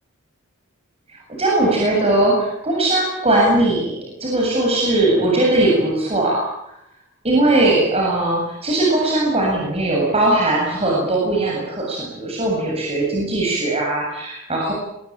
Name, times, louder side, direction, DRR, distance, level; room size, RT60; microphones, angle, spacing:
voice 1, 1.4-6.4 7.2-14.7, right 2 dB, 30° right, -2 dB, 8.0 m, -19 dB
26.5 x 22.0 x 9.0 m, 0.81 s
head